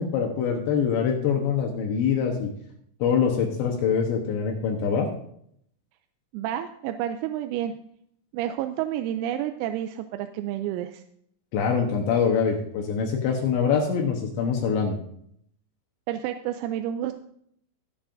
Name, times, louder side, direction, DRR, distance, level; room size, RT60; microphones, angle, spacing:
voice 1, 0.0-2.5 3.0-5.1 11.5-15.0, left 6 dB, 75° left, 2 dB, 2.9 m, -24 dB
voice 2, 6.3-7.7 8.3-11.0 16.1-17.1, right 11 dB, 90° right, 7 dB, 3.3 m, -30 dB
19.5 x 7.3 x 2.6 m, 0.68 s
omnidirectional pair, 6.0 m